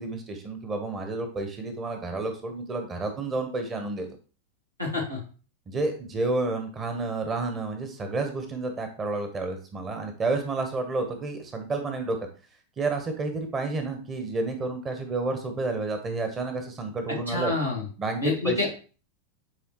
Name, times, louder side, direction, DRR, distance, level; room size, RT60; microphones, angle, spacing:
voice 1, 0.0-4.1 5.7-12.2 12.8-17.5 18.0-18.7, right 3 dB, 25° right, 6 dB, 1.0 m, -30 dB
voice 2, 4.8-5.2 17.3-17.8 18.2-18.7, left 3 dB, 90° right, -2 dB, 2.2 m, -27 dB
9.3 x 3.6 x 3.0 m, 0.38 s
figure-of-eight pair, 90°, 0 cm